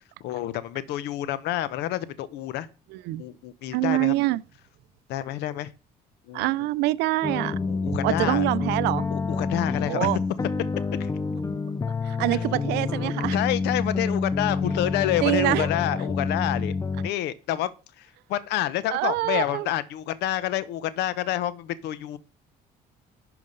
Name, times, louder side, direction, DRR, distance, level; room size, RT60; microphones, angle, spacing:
voice 1, 0.2-2.7 3.2-4.1 5.1-5.7 6.3-6.7 7.7-8.4 9.1-10.1 11.0-11.1 13.3-16.8 17.0-17.7 18.0-22.2, left 13 dB, 85° left, 0.8 m, -28 dB
voice 2, 2.9-3.2 3.7-4.4 6.3-7.6 8.0-9.1 9.9-10.2 12.1-13.4 15.2-15.7 18.9-19.7, right 19 dB, 90° right, 0.5 m, -25 dB
sound 1, 7.2-17.1, left 4 dB, 20° left, 0.4 m, -28 dB
11.0 x 4.8 x 5.3 m
cardioid pair, 110°, 17 cm